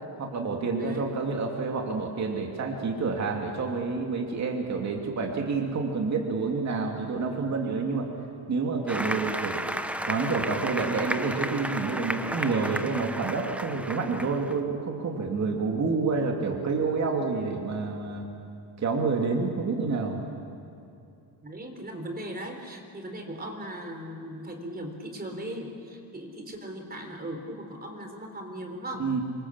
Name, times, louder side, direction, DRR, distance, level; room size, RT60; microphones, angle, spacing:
voice 1, 0.2-8.1 8.5-9.6 10.0-18.3 18.8-20.2 29.0-29.2, right 4 dB, 35° right, 1 dB, 2.8 m, -28 dB
voice 2, 0.8-1.1 21.4-29.1, right 1 dB, 20° right, 4 dB, 3.7 m, -38 dB
Applause, 8.9-14.5, right 1 dB, 5° right, 0.9 m, -33 dB
27.5 x 24.5 x 7.5 m, 2.6 s
cardioid pair, 140°, 45 cm